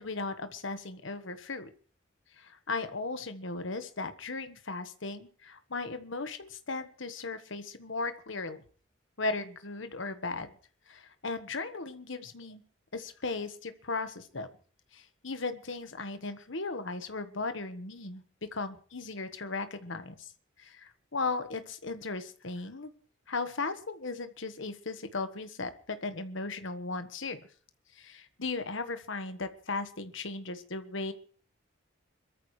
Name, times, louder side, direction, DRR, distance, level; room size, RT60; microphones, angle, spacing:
voice 1, 0.0-1.7 2.4-8.6 9.2-10.5 10.9-12.6 12.9-14.5 14.9-20.3 20.6-22.9 23.3-27.4 28.0-31.1, left 3 dB, 70° left, 10 dB, 1.3 m, -37 dB
25.5 x 13.5 x 3.2 m, 0.42 s
head